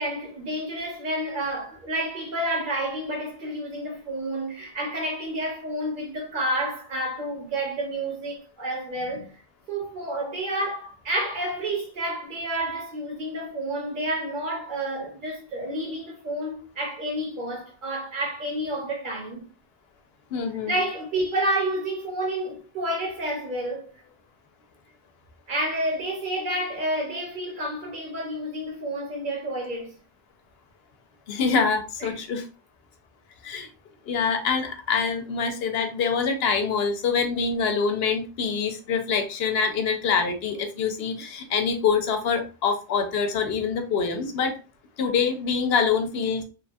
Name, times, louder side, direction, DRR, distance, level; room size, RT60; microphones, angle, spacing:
voice 1, 0.0-9.4 9.7-19.5 20.7-23.9 25.5-29.9 32.0-32.2, right 1 dB, 55° right, 1.1 m, -30 dB
voice 2, 20.3-20.8 31.3-32.4 33.4-33.7 34.1-44.5 45.0-46.4, left 5 dB, 75° left, 0.9 m, -25 dB
3.0 x 2.3 x 2.5 m
omnidirectional pair, 1.0 m